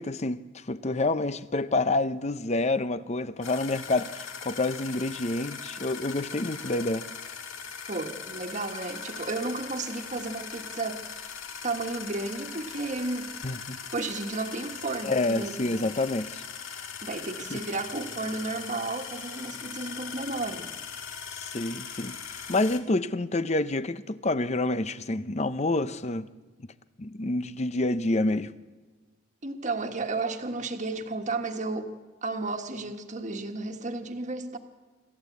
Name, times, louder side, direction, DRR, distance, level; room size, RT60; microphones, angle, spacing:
voice 1, 0.0-7.0 13.4-13.8 15.0-16.4 17.5-17.6 21.3-22.2 22.5-26.3 27.0-28.5, left 2 dB, 30° left, 0.6 m, -28 dB
sound 1, 3.4-22.8, left 6 dB, 75° left, 1.9 m, -40 dB
voice 2, 7.9-11.0 11.6-13.3 13.9-15.9 17.0-20.7 29.4-34.6, right 3 dB, 35° right, 1.5 m, -33 dB
26.5 x 14.0 x 8.4 m
head